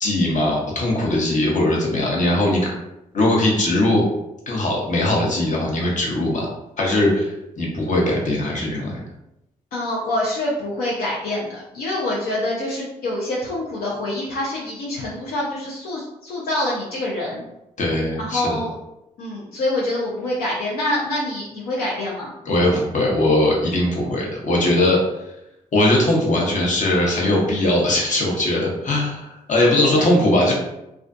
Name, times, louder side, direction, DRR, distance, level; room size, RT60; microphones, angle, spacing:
voice 1, 0.0-2.7 3.1-4.0 4.5-6.5 6.8-7.3 7.6-9.0 17.8-18.6 22.4-25.0 25.7-30.5, left 1 dB, 55° left, -2 dB, 0.9 m, -20 dB
voice 2, 9.7-17.4 18.2-18.7 19.2-22.3 29.9-30.1, left 1 dB, 80° left, -5 dB, 0.5 m, -26 dB
2.4 x 2.3 x 2.5 m, 0.87 s
supercardioid pair, 45°, 16 cm